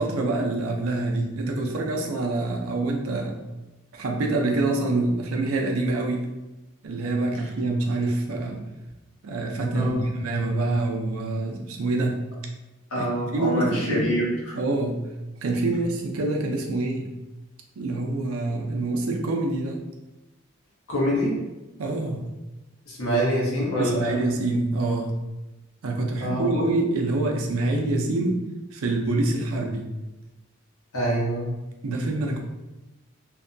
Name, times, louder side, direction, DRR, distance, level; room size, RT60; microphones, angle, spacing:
voice 1, 0.0-3.4 3.9-6.2 6.8-8.6 9.2-12.2 12.9-13.1 13.3-14.2 14.5-15.1 15.4-17.1 17.8-19.8 21.8-22.3 23.8-25.2 25.8-28.4 28.7-29.9 31.8-32.4, right 2 dB, 85° right, 2 dB, 0.5 m, -26 dB
voice 2, 12.9-14.5 20.9-21.4 22.9-24.2 26.2-26.6 30.9-31.5, equal, 80° left, -5 dB, 1.0 m, -25 dB
2.6 x 2.2 x 2.5 m, 1.0 s
head